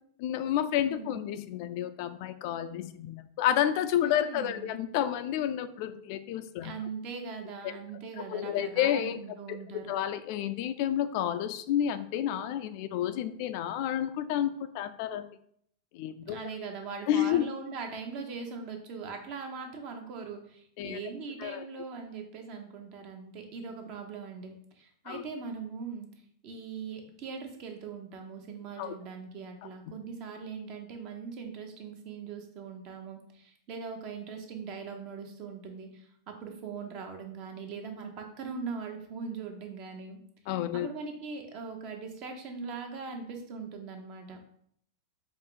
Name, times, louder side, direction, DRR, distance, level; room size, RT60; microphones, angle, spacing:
voice 1, 0.2-6.7 7.6-7.8 8.2-9.2 9.5-9.6 9.9-15.3 15.9-16.4 17.1-17.5 20.8-21.0 21.4-21.6 25.1-25.2 28.8-28.9 40.5-40.9, left 11 dB, 50° left, 11 dB, 0.3 m, -30 dB
voice 2, 0.8-1.3 4.0-4.7 6.6-9.9 16.2-26.1 26.4-40.2 40.7-44.4, right 5 dB, 45° right, 4 dB, 0.9 m, -41 dB
4.5 x 2.4 x 3.8 m, 0.67 s
hypercardioid pair, 110°, 2 cm